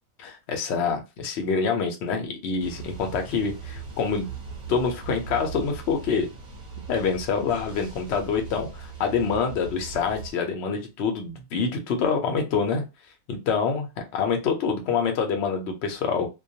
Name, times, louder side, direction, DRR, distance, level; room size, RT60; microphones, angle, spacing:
voice 1, 0.2-4.3 4.7-6.3 6.9-12.8 13.3-16.3, left 5 dB, 60° left, 4 dB, 0.8 m, -26 dB
sound 1, 2.6-10.3, right 5 dB, 55° right, 0.6 m, -40 dB
2.2 x 2.2 x 2.6 m, 0.26 s
omnidirectional pair, 1.5 m